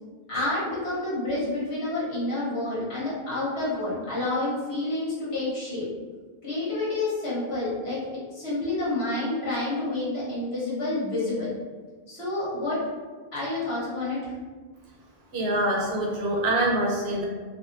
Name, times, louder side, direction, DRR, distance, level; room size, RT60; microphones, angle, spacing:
voice 1, 0.3-5.9 6.4-8.0 8.3-11.5 12.1-12.8 13.3-14.3, left 2 dB, 75° left, -9 dB, 1.5 m, -29 dB
voice 2, 15.3-17.2, right 1 dB, 75° right, -3 dB, 1.0 m, -25 dB
3.5 x 2.3 x 2.6 m, 1.4 s
omnidirectional pair, 1.1 m